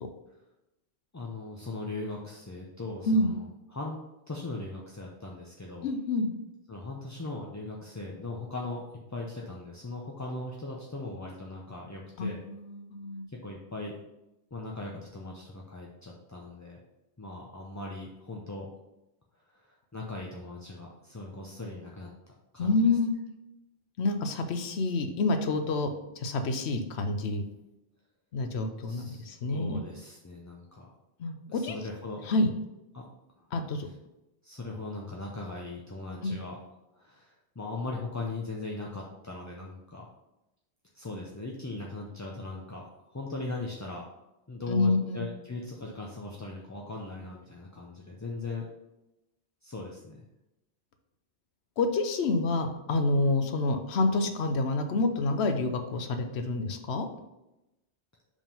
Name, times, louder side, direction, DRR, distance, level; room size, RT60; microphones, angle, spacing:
voice 1, 1.1-4.0 4.3-5.9 6.7-8.8 9.1-12.4 13.3-13.9 14.5-16.8 17.2-18.7 19.5-22.1 22.5-23.0 28.8-30.9 31.5-32.2 32.9-33.1 34.4-36.6 37.0-40.1 40.9-44.1 44.5-48.7 49.6-50.2, left 2 dB, 25° left, -2 dB, 0.4 m, -39 dB
voice 2, 5.8-6.3 12.2-13.2 22.6-23.1 24.0-25.9 26.2-27.4 28.3-29.8 31.2-31.7 32.3-32.5 33.5-33.9 36.2-36.4 44.7-45.2 51.8-57.1, left 2 dB, 75° left, 7 dB, 1.0 m, -28 dB
5.1 x 3.6 x 5.3 m, 0.93 s
omnidirectional pair, 1.2 m